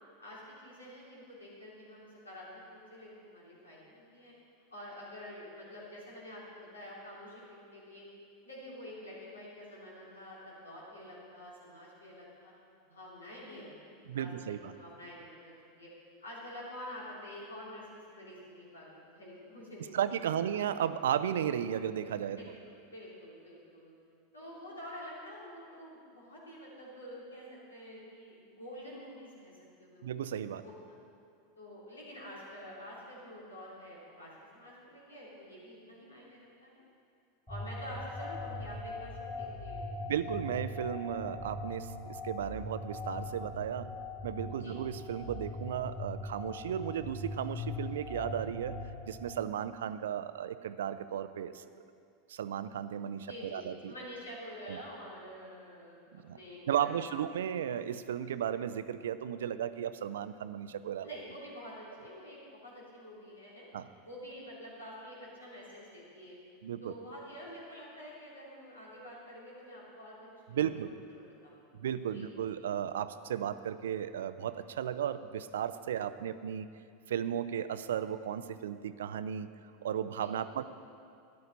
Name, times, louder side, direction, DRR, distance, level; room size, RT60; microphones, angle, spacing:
voice 1, 0.2-4.3 4.7-8.1 8.4-12.5 12.9-14.3 14.7-15.9 16.2-20.0 20.4-20.5 22.3-22.5 22.8-23.9 24.3-29.5 29.8-30.1 30.6-31.0 31.6-36.8 37.5-39.9 40.2-40.3 44.6-44.8 53.2-57.3 61.0-63.7 64.0-66.4 66.8-71.8 72.1-72.2 80.2-80.3, equal, 80° left, -5 dB, 3.1 m, -48 dB
voice 2, 14.1-14.7 19.9-22.4 30.0-30.6 40.0-43.9 44.2-48.8 49.1-51.6 52.3-53.9 54.7-54.8 56.1-56.4 56.7-61.1 63.7-63.9 66.6-66.9 70.5-70.9 71.8-76.7 77.1-79.5 79.8-80.6, right 9 dB, 70° right, 13 dB, 0.4 m, -35 dB
sound 1, 37.5-49.4, left 2 dB, 15° left, 2.4 m, -41 dB
13.0 x 10.5 x 4.1 m, 2.4 s
figure-of-eight pair, 85°, 0 cm